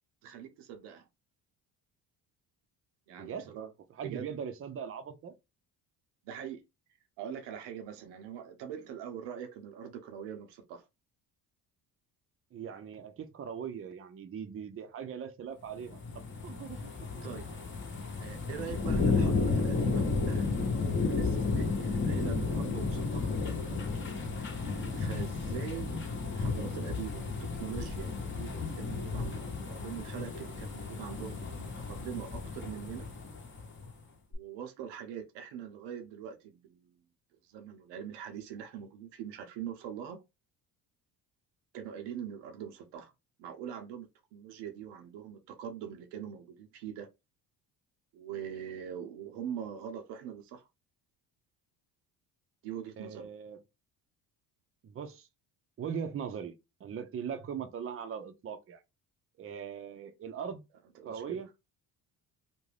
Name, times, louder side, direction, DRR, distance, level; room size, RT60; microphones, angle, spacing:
voice 1, 0.2-1.1 3.1-3.7 4.0-4.3 6.2-6.6 7.2-10.8 17.2-17.6 18.2-20.5 21.0-23.3 24.4-33.1 34.3-37.0 37.4-40.2 41.7-43.1 43.4-47.1 48.1-50.7 52.6-53.3 61.0-61.4, right 9 dB, 85° right, 0.7 m, -43 dB
voice 2, 3.1-3.5 4.0-5.3 12.5-17.2 53.0-53.6 54.8-55.3 55.8-58.8 59.4-60.6 61.0-61.5, right 7 dB, 35° right, 0.6 m, -40 dB
sound 1, 15.8-33.9 34.3-34.4, left 4 dB, 30° left, 0.9 m, -33 dB
2.5 x 2.2 x 3.2 m
supercardioid pair, 80°, 41 cm